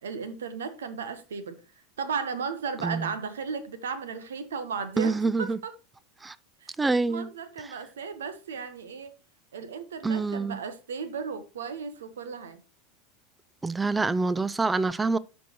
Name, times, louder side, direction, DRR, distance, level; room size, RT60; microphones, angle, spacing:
voice 1, 0.0-1.6 2.0-5.7 6.6-6.7 7.1-9.1 9.5-12.6, right 5 dB, 75° right, 1.0 m, -35 dB
voice 2, 2.8-3.1 5.0-5.6 6.2-6.4 6.8-7.3 7.6-7.8 10.0-10.6 13.6-15.2, right 3 dB, 15° right, 0.4 m, -26 dB
12.0 x 4.4 x 3.0 m
figure-of-eight pair, 85°, 0 cm